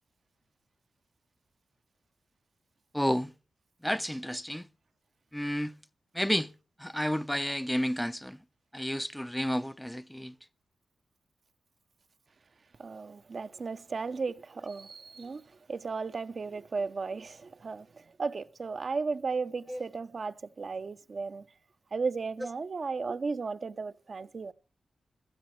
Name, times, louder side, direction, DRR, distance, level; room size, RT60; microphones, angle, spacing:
voice 1, 2.9-3.3 3.8-4.6 5.3-5.8 6.1-6.5 6.8-8.4 8.7-10.3 19.7-19.8, equal, 5° left, 0.6 m, -31 dB
voice 2, 12.8-21.5 21.9-24.5, right 4 dB, 55° right, 0.7 m, -35 dB
17.0 x 12.5 x 3.2 m
cardioid pair, 55°, 0 cm